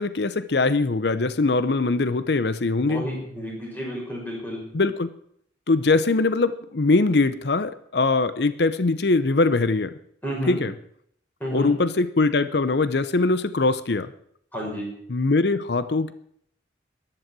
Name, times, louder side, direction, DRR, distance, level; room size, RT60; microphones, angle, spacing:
voice 1, 0.0-3.0 4.7-5.1 5.7-9.9 10.5-10.7 11.5-14.1 15.1-16.1, left 3 dB, 60° left, 13 dB, 0.7 m, -22 dB
voice 2, 2.9-4.6 10.2-10.6 11.4-11.7 14.5-14.9, equal, 10° left, -2 dB, 6.1 m, -30 dB
14.5 x 11.0 x 6.1 m, 0.66 s
head